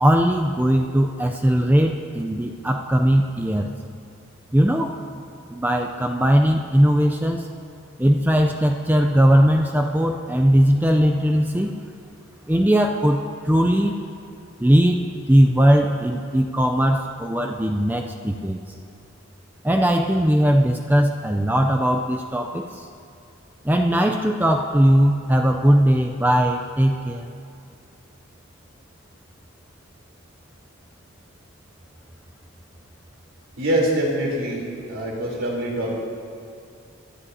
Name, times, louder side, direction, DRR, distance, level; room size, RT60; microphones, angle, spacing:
voice 1, 0.0-3.7 4.5-4.9 5.5-7.5 8.0-11.8 12.5-14.0 14.6-15.0 15.3-18.6 19.6-22.9 23.6-27.3, equal, 10° right, 3 dB, 0.4 m, -19 dB
voice 2, 33.6-34.6 34.9-36.0, right 1 dB, 75° right, -3 dB, 3.4 m, -24 dB
25.5 x 12.5 x 2.8 m, 2.5 s
head